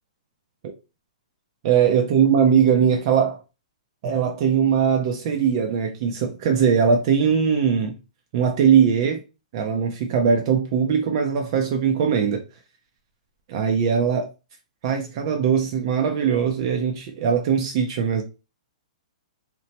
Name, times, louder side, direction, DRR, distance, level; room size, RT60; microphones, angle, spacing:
voice 1, 1.6-3.4 4.0-7.9 8.3-9.2 9.5-12.4 13.5-14.3 14.8-18.2, right 7 dB, 45° right, 0.5 m, -20 dB
2.9 x 2.0 x 2.8 m
hypercardioid pair, 145°, 4 cm